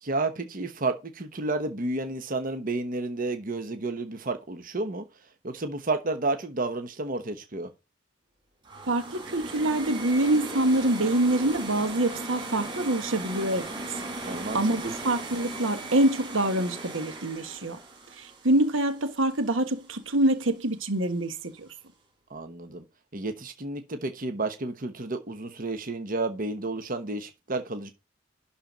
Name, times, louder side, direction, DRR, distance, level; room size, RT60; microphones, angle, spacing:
voice 1, 0.0-5.0 5.4-7.7 14.2-14.9 22.3-22.8 23.1-27.9, right 2 dB, 45° right, 1.1 m, -31 dB
sound 1, 8.6-19.6, right 2 dB, 25° right, 3.7 m, -38 dB
voice 2, 8.9-13.7 14.2-17.8 18.2-21.7, right 1 dB, 85° right, 1.5 m, -25 dB
11.5 x 4.3 x 5.2 m
head